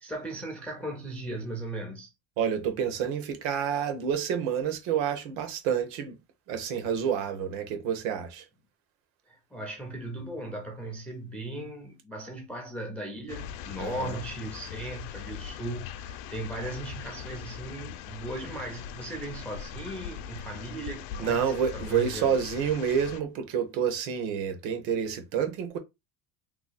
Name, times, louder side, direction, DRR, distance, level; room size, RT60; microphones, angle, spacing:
voice 1, 0.0-2.1 9.3-22.4, right 1 dB, 5° left, 0.3 m, -37 dB
voice 2, 2.4-6.2 6.5-8.5 13.8-14.2 21.2-25.8, right 8 dB, 65° right, 1.0 m, -29 dB
sound 1, 13.3-23.2, left 9 dB, 75° left, 0.6 m, -41 dB
3.0 x 2.3 x 3.9 m
cardioid pair, 145°, 50 cm